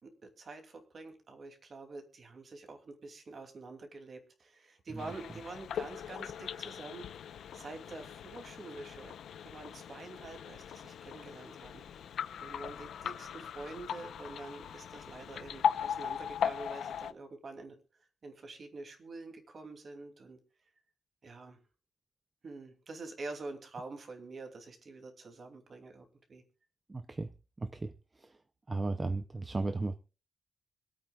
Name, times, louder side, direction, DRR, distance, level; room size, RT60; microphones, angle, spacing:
voice 1, 0.0-7.0 7.3-9.1 9.4-11.8 12.4-17.8 18.2-20.4 21.2-21.6 22.4-26.4, right 3 dB, 40° right, 2.8 m, -47 dB
sound 1, 5.0-17.1, left 8 dB, 90° left, 0.7 m, -39 dB
voice 2, 26.9-27.3 27.6-27.9 28.7-30.0, right 3 dB, 20° right, 0.6 m, -34 dB
26.0 x 8.7 x 2.4 m
wide cardioid pair, 170°, 0 cm